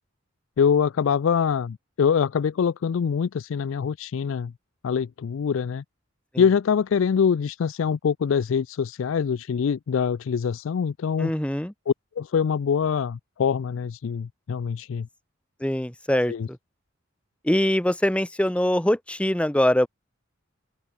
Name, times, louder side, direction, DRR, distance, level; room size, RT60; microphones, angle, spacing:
voice 1, 0.6-4.5 4.8-5.8 6.4-11.3 11.9-15.1 16.3-16.5, left 6 dB, 70° left, 0.4 m, -24 dB
voice 2, 11.2-11.7 15.6-16.6 17.4-19.9, left 1 dB, 5° left, 0.8 m, -23 dB
open air
head